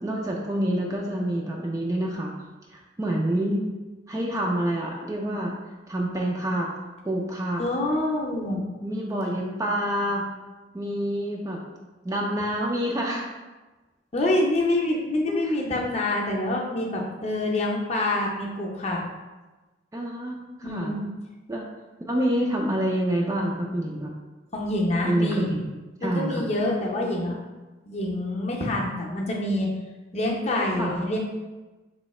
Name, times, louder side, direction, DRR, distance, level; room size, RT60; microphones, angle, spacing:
voice 1, 0.0-2.3 2.7-3.6 4.1-5.5 5.9-6.7 7.0-7.6 8.8-10.2 10.7-11.6 12.0-13.3 15.3-15.5 19.9-20.9 21.5-21.6 22.1-24.1 25.0-25.7 26.0-26.4 30.8-30.9, right 1 dB, 15° right, -1 dB, 0.3 m, -27 dB
voice 2, 7.6-8.6 14.1-19.0 20.6-21.1 24.5-25.5 26.0-27.4 27.9-29.7 30.1-31.2, left 1 dB, 35° left, -2 dB, 0.6 m, -26 dB
3.1 x 2.8 x 4.1 m, 1.2 s
head